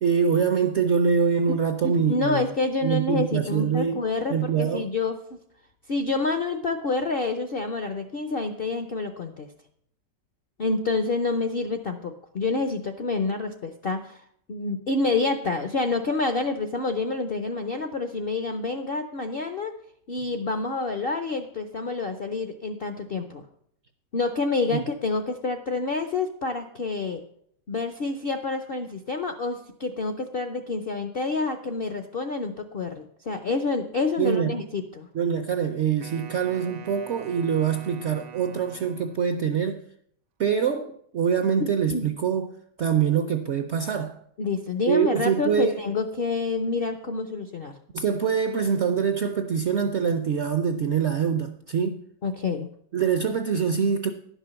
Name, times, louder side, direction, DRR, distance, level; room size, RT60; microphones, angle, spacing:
voice 1, 0.0-2.5 2.8-4.9 24.7-24.8 34.2-34.6 35.1-39.8 40.4-42.5 42.8-44.2 44.9-45.8 47.9-52.0 52.9-54.1, right 7 dB, 65° right, 0.7 m, -24 dB
voice 2, 1.8-5.4 5.9-9.5 10.6-14.2 14.5-19.7 20.1-23.4 24.1-27.2 27.7-35.1 41.9-42.1 44.4-47.7 52.2-52.7, left 3 dB, 60° left, 0.5 m, -28 dB
Wind instrument woodwind instrument, 36.0-39.5, right 8 dB, 85° right, 1.6 m, -44 dB
11.0 x 6.0 x 6.8 m
omnidirectional pair, 1.9 m